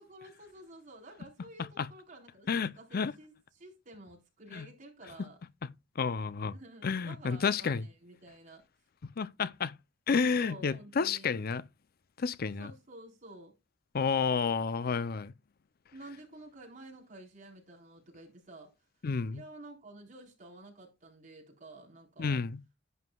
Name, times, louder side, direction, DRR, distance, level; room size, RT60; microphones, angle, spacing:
voice 1, 0.0-5.4 6.5-8.6 10.3-11.4 12.6-13.5 15.9-18.7 19.3-22.4, right 2 dB, 40° right, 4.1 m, -51 dB
voice 2, 2.5-3.1 4.5-4.7 6.0-6.5 6.8-7.8 9.2-9.7 10.1-11.6 12.2-12.7 13.9-15.3 19.0-19.4 22.2-22.6, left 5 dB, 50° left, 0.5 m, -30 dB
11.0 x 9.4 x 2.3 m
head